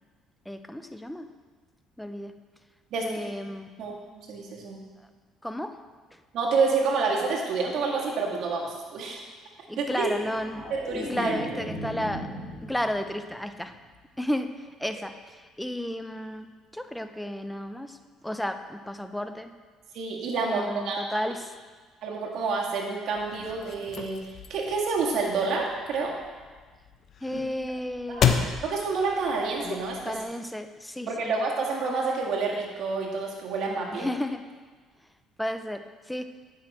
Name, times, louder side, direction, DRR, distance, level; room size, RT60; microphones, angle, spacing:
voice 1, 0.5-1.3 2.0-2.3 3.0-3.7 5.4-5.8 6.1-6.2 9.7-10.7 10.9-12.3 12.6-13.7 14.2-18.0 18.2-19.5 20.4-21.5 27.2-28.3 30.0-31.3 33.9-34.5 35.4-36.2, left 1 dB, 5° left, 8 dB, 0.6 m, -33 dB
voice 2, 3.8-4.8 6.3-9.2 9.8-10.1 10.9-11.4 19.9-21.0 22.0-26.1 27.3-27.4 28.1-30.1 31.1-34.1, right 4 dB, 65° right, -2 dB, 1.9 m, -28 dB
sound 1, 10.0-13.2 13.6-13.9, equal, 20° left, 2.5 m, -36 dB
sound 2, 23.2-30.2, left 7 dB, 50° left, 0.7 m, -32 dB
9.4 x 6.4 x 4.3 m, 1.4 s
supercardioid pair, 90°, 0 cm